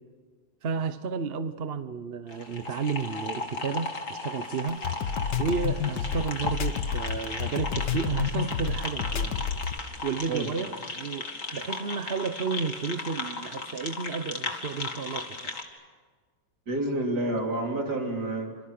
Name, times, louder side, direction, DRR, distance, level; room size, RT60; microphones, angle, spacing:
voice 1, 0.6-4.8 5.4-9.4 10.0-15.5, right 5 dB, 45° right, 11 dB, 0.9 m, -32 dB
sound 1, 2.3-15.6, left 3 dB, 45° left, 2.6 m, -36 dB
sound 2, 4.7-9.8, left 7 dB, 70° left, 1.7 m, -29 dB
voice 2, 16.7-18.6, right 1 dB, 65° right, 2 dB, 3.8 m, -29 dB
28.5 x 27.0 x 6.6 m, 1.5 s
omnidirectional pair, 1.9 m